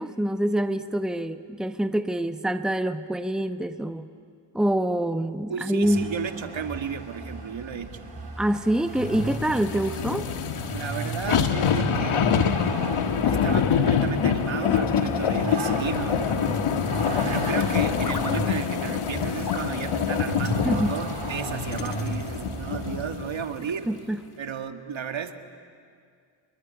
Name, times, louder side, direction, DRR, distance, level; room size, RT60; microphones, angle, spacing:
voice 1, 0.0-4.1 4.5-6.1 8.4-10.3 20.6-20.9 23.9-24.2, right 1 dB, ahead, 9 dB, 1.1 m, -26 dB
voice 2, 5.5-8.0 10.7-12.3 13.2-16.6 17.2-23.9 24.4-25.3, right 7 dB, 65° right, 7 dB, 1.9 m, -33 dB
Vehicle, 5.8-23.0, right 3 dB, 50° right, 5.3 m, -35 dB
sound 1, 9.0-23.4 23.9-24.0, left 7 dB, 80° left, 1.6 m, -26 dB
sound 2, 14.9-16.0 18.0-18.4 19.4-19.7 20.4-20.6 21.7-22.6, left 4 dB, 40° left, 1.9 m, -39 dB
26.5 x 21.5 x 9.5 m, 2.2 s
cardioid pair, 55°, 49 cm